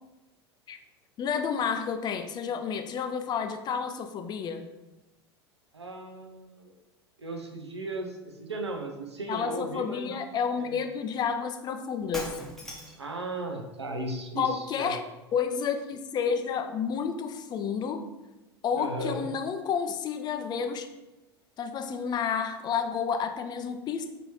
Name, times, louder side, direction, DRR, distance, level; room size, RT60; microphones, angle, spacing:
voice 1, 1.2-4.7 9.3-12.3 14.4-15.0 15.3-18.0 18.6-20.9 21.6-24.1, left 6 dB, 30° left, 7 dB, 0.4 m, -30 dB
voice 2, 5.7-6.7 7.2-10.2 10.6-10.8 13.0-15.0 18.8-19.3, right 2 dB, 90° right, 4 dB, 0.5 m, -36 dB
Shatter, 12.1-13.1, equal, 5° left, 0.8 m, -38 dB
4.0 x 2.7 x 3.0 m, 1.0 s
figure-of-eight pair, 80°, 14 cm